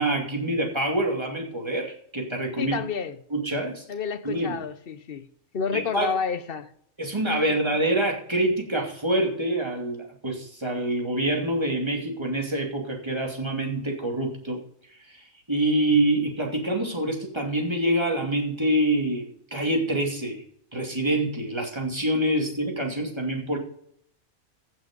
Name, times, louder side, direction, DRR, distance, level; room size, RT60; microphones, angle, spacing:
voice 1, 0.0-2.8 3.3-3.8 4.2-4.6 5.7-6.1 7.0-14.6 15.1-20.4 20.7-23.6, right 1 dB, 20° right, 2.5 m, -26 dB
voice 2, 2.6-3.2 3.9-5.3 5.5-6.7 7.5-7.6, left 6 dB, 50° left, 0.9 m, -30 dB
16.0 x 6.1 x 5.2 m
omnidirectional pair, 1.5 m